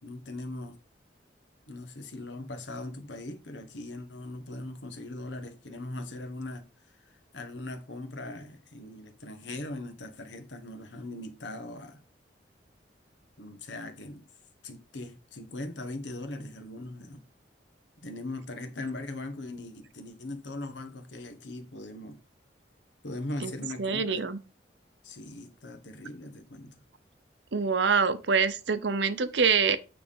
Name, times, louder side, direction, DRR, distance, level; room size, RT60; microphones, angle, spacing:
voice 1, 0.0-0.8 1.7-6.7 7.3-12.0 13.4-14.3 14.6-17.2 18.0-22.2 23.0-24.3 25.0-26.8, left 2 dB, 90° left, 1.3 m, -40 dB
voice 2, 23.8-24.4 27.5-29.8, right 5 dB, 80° right, 0.7 m, -25 dB
9.2 x 3.5 x 5.3 m
head